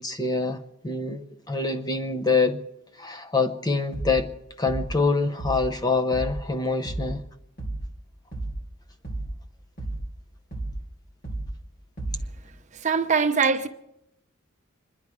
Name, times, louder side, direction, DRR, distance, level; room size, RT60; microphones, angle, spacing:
voice 1, 0.0-2.6 3.0-4.3 4.6-7.2, left 4 dB, 20° left, 0.7 m, -25 dB
sound 1, 3.9-4.3 4.7-5.0 5.4-5.8 6.1-6.5 6.9-7.2 7.6-8.0 8.3-8.7 9.0-9.4 9.8-10.2 10.5-10.9 11.2-11.6 12.0-12.4, right 2 dB, 45° left, 3.0 m, -33 dB
voice 2, 12.7-13.7, right 5 dB, 35° right, 0.8 m, -22 dB
26.0 x 10.5 x 4.8 m
head